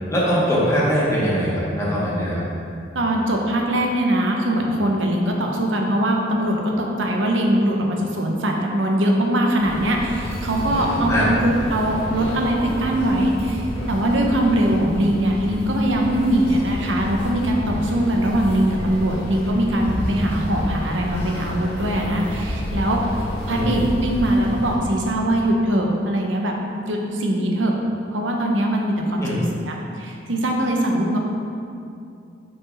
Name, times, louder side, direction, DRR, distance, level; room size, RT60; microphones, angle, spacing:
voice 1, 0.1-2.4 11.1-11.3 23.5-23.7 29.2-29.4, equal, 15° left, -7 dB, 1.4 m, -21 dB
voice 2, 2.9-23.0 23.5-26.5 26.8-27.8 28.1-31.2, right 1 dB, 85° right, 1 dB, 0.8 m, -21 dB
sound 1, 9.6-24.8, equal, 30° left, 1.3 m, -29 dB
6.0 x 4.9 x 4.0 m, 2.5 s
head